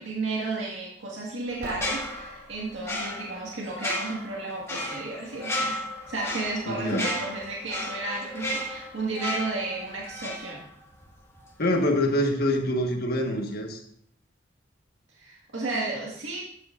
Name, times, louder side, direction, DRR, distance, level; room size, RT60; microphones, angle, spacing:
voice 1, 0.0-5.8 6.1-10.6 15.2-16.4, right 3 dB, 90° right, -4 dB, 1.8 m, -33 dB
sound 1, 1.4-3.1, right 2 dB, 55° right, 0.9 m, -43 dB
sound 2, 1.7-11.1 11.4-11.6, left 1 dB, 15° left, 1.7 m, -34 dB
voice 2, 6.7-7.1 11.6-13.8, left 1 dB, 55° left, 3 dB, 1.5 m, -25 dB
12.5 x 9.1 x 2.5 m, 0.66 s
head